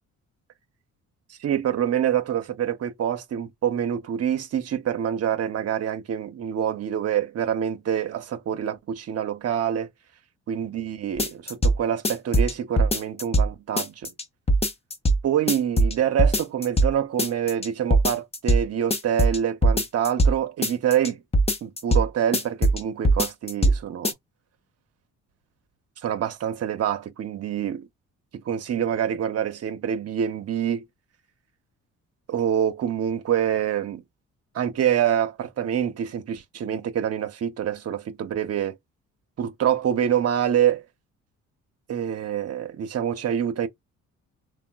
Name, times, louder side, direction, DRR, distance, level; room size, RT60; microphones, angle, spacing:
voice 1, 1.4-9.9 10.5-14.1 15.2-21.2 21.6-24.1 26.0-27.9 28.3-30.8 32.3-34.0 34.5-38.8 39.4-40.8 41.9-43.7, right 9 dB, 55° right, 0.7 m, -26 dB
sound 1, 11.2-11.8 12.0-13.5 13.8-14.2 14.5-15.2 15.5-16.9 17.2-17.7 17.9-18.6 18.9-20.3 20.6-21.1 21.3-22.0 22.3-22.8 23.0-23.8 24.0-24.1, right 1 dB, 20° left, 0.7 m, -20 dB
3.4 x 2.1 x 2.3 m
cardioid pair, 90°, 30 cm